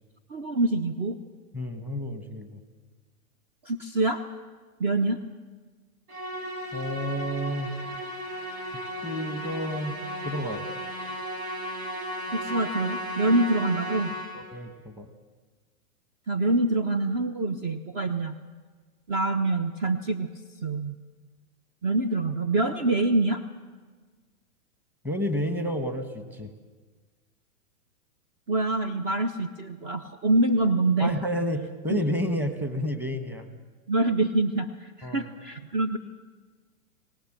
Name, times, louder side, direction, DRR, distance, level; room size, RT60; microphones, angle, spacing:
voice 1, 0.3-1.1 3.6-4.2 4.8-5.2 12.3-14.1 16.3-18.3 19.1-20.3 20.6-21.0 21.8-23.4 28.5-31.2 31.9-32.0 33.9-36.0, right 2 dB, 30° right, 10 dB, 0.9 m, -25 dB
voice 2, 1.5-2.6 6.7-7.7 9.0-10.0 10.2-10.6 14.3-15.1 25.0-26.5 31.0-33.5 35.0-35.3, equal, 5° right, 7 dB, 1.3 m, -30 dB
Musical instrument, 6.1-14.6, equal, 85° right, 5.4 m, -35 dB
23.5 x 18.5 x 7.5 m, 1.4 s
hypercardioid pair, 140°, 44 cm